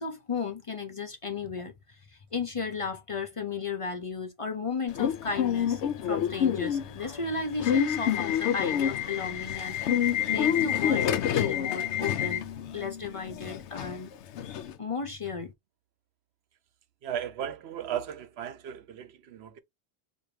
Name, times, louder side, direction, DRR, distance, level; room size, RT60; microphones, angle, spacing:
voice 1, 0.0-9.8 10.3-12.4 12.7-14.1 14.8-15.5, left 5 dB, 35° left, 0.6 m, -34 dB
Subway metro underground / Alarm, 4.9-14.7, left 9 dB, 85° left, 0.9 m, -28 dB
voice 2, 17.0-19.6, right 9 dB, 75° right, 0.9 m, -36 dB
4.9 x 2.6 x 2.7 m
omnidirectional pair, 1.1 m